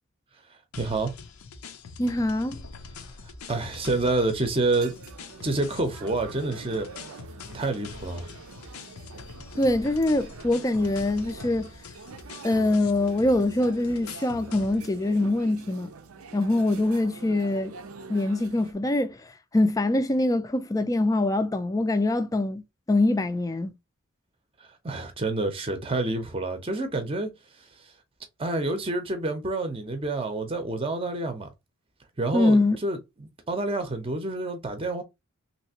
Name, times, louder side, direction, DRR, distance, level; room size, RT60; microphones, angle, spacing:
sound 1, 0.7-15.0, left 4 dB, 85° left, 0.6 m, -44 dB
voice 1, 0.8-1.1 3.5-5.0 5.4-6.9 7.5-8.3 24.8-27.3 28.4-31.5 32.2-35.0, right 2 dB, 25° right, 0.7 m, -28 dB
voice 2, 2.0-2.6 9.6-11.7 12.4-15.9 16.3-17.7 18.1-19.2 19.5-22.6 22.9-23.7 32.3-32.8, left 2 dB, 15° left, 0.4 m, -24 dB
sound 2, 4.7-18.7, right 4 dB, 80° right, 0.6 m, -45 dB
3.3 x 2.8 x 2.8 m
head